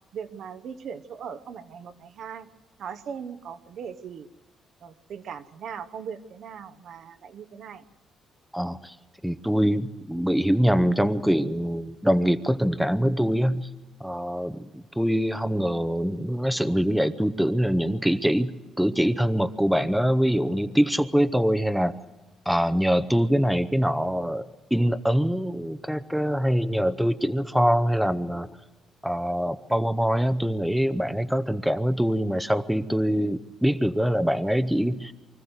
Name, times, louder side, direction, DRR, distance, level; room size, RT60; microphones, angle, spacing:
voice 1, 0.1-2.5 2.8-4.3 4.8-7.8, right 7 dB, 70° right, 10 dB, 1.0 m, -39 dB
voice 2, 8.5-8.9 9.2-13.7 14.0-21.9 22.5-28.5 29.0-35.1, equal, ahead, 11 dB, 0.8 m, -24 dB
24.5 x 14.5 x 8.0 m, 1.2 s
cardioid pair, 90°, 0 cm